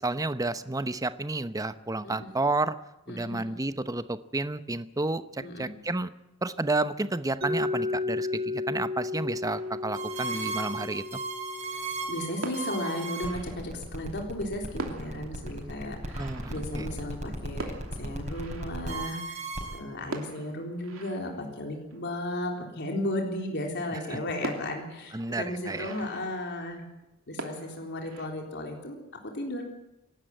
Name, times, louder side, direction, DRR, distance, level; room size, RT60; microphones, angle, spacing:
voice 1, 0.0-2.8 3.1-6.1 6.4-11.0 16.2-16.9 24.1-24.2 25.1-25.9, right 2 dB, 15° right, 12 dB, 0.8 m, -31 dB
voice 2, 3.1-3.5 5.4-5.7 11.7-17.7 18.0-19.4 19.7-26.8 27.3-29.0 29.2-29.6, left 1 dB, 55° left, 1 dB, 3.8 m, -35 dB
Mallet percussion, 7.4-13.2, left 3 dB, 55° right, 5.5 m, -34 dB
sound 1, 9.5-11.3 12.1-12.2 12.4-14.1 14.5-14.6 14.8-19.5 20.0-22.7 23.2-23.3 23.7-23.8 24.4-27.1 27.4-28.3, right 2 dB, 85° right, 2.9 m, -43 dB
sound 2, 9.9-19.8, right 3 dB, 35° right, 4.8 m, -36 dB
26.0 x 12.0 x 9.0 m, 0.90 s
head